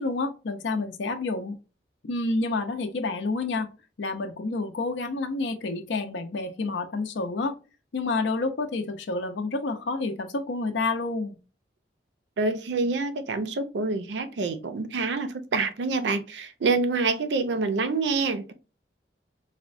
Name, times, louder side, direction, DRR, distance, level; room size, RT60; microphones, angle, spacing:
voice 1, 0.0-1.5 2.0-3.7 4.0-7.6 7.9-11.4, left 3 dB, 85° left, 0.5 m, -29 dB
voice 2, 12.4-18.5, right 3 dB, 80° right, 0.5 m, -27 dB
4.1 x 2.1 x 2.5 m
head